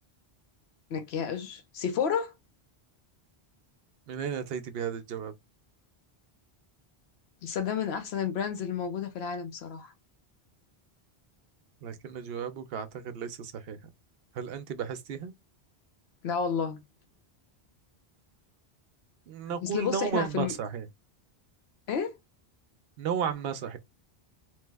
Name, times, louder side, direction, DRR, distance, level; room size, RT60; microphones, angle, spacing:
voice 1, 0.9-2.3 7.4-9.9 16.2-16.8 19.6-20.5 21.9-22.1, left 7 dB, 80° left, 0.9 m, -31 dB
voice 2, 4.1-5.3 11.8-13.8 14.3-15.3 19.3-20.9 23.0-23.8, right 7 dB, 70° right, 0.8 m, -34 dB
3.1 x 2.0 x 3.3 m
omnidirectional pair, 1.1 m